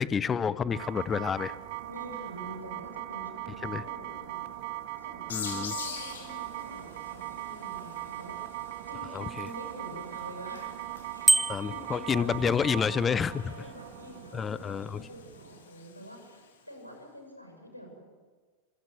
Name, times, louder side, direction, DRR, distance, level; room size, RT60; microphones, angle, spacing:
voice 1, 0.0-1.6 3.6-3.8 5.3-5.7 9.1-9.5 11.5-13.5 14.3-15.1, left 6 dB, 20° left, 18 dB, 0.8 m, -29 dB
sound 1, 0.7-15.6, right 15 dB, 50° right, 1.7 m, -40 dB
voice 2, 1.9-4.4 5.0-8.4 8.9-10.8 11.1-12.5 13.3-18.0, equal, 90° left, 3 dB, 7.1 m, -46 dB
sound 2, 5.3-16.6, left 6 dB, 65° left, 4.7 m, -46 dB
Bicycle bell, 11.3-11.9, right 2 dB, 5° right, 0.9 m, -23 dB
28.5 x 26.5 x 7.9 m, 1.4 s
figure-of-eight pair, 90°, 0 cm